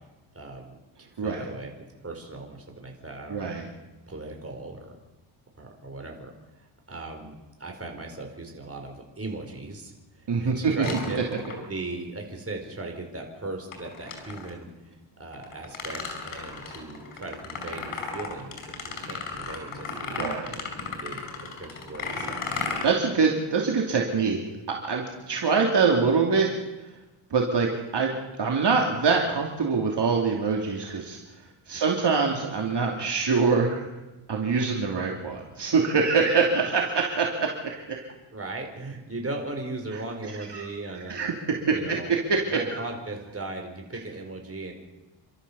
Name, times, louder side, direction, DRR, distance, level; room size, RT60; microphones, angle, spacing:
voice 1, 0.3-0.7 1.0-1.7 2.0-3.5 4.1-5.0 5.5-6.3 6.6-11.2 11.7-20.2 21.0-22.6 31.7-31.8 38.3-41.2 41.7-42.1 42.5-44.7, right 2 dB, 30° right, 2 dB, 4.9 m, -38 dB
voice 2, 3.3-3.6 10.3-10.9 20.2-20.6 22.8-24.4 24.7-26.5 27.3-31.2 31.7-33.8 34.3-38.1 40.5-40.6 41.1-42.6, right 5 dB, 55° right, 0 dB, 2.9 m, -24 dB
sound 1, 10.8-11.9 13.7-14.6 15.3-22.8, left 4 dB, 85° left, 5.1 m, -35 dB
29.0 x 13.0 x 7.1 m, 1.1 s
cardioid pair, 100°, 49 cm